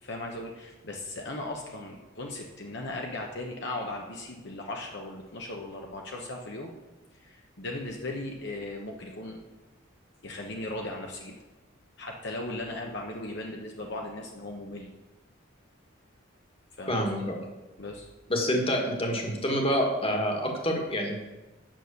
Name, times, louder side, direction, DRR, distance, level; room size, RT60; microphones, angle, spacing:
voice 1, 0.0-6.7 7.1-9.4 10.2-11.3 12.0-14.9 16.8-17.3 17.8-18.1, left 2 dB, 60° left, 1 dB, 1.0 m, -37 dB
voice 2, 16.9-17.4 18.3-21.2, equal, 30° left, 1 dB, 1.7 m, -27 dB
9.1 x 6.2 x 6.9 m, 1.1 s
head